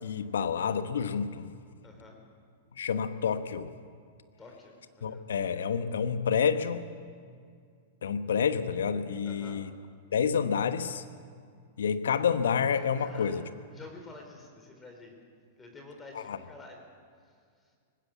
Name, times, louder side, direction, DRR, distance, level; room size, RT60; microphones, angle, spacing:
voice 1, 0.0-1.5 2.8-3.7 5.0-6.8 8.0-9.7 10.1-11.0 11.8-13.4 16.3-16.4, left 7 dB, 75° left, 11 dB, 1.1 m, -28 dB
voice 2, 1.8-2.2 4.4-5.3 9.2-9.6 13.0-15.1 15.6-16.8 17.2-17.8, left 3 dB, 15° left, 2 dB, 4.0 m, -50 dB
19.5 x 16.5 x 8.2 m, 2.2 s
hypercardioid pair, 100°, 0 cm